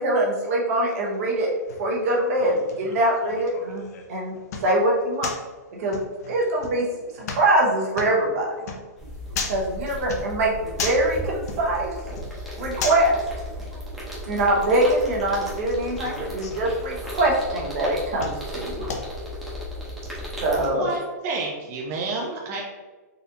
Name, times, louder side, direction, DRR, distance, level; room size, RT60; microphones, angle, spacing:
voice 1, 0.0-1.5 1.8-5.3 5.8-6.9 7.1-8.6 9.5-11.9 12.6-13.2 14.3-18.9 20.4-20.9, right 1 dB, 55° right, -1 dB, 1.0 m, -23 dB
sound 1, 0.9-19.5, left 4 dB, 65° left, 0.6 m, -38 dB
voice 2, 8.6-9.4 9.7-9.8 12.1-12.9 13.4-14.2 16.1-16.2 16.5-16.7 18.5-20.4 21.9-22.0, right 3 dB, 75° right, 1 dB, 0.6 m, -50 dB
sound 2, 9.0-20.7, equal, ahead, 0.9 m, -35 dB
voice 3, 20.7-22.6, right 3 dB, 30° right, -1 dB, 0.4 m, -29 dB
4.0 x 2.5 x 2.7 m, 1.3 s
hypercardioid pair, 150°, 9 cm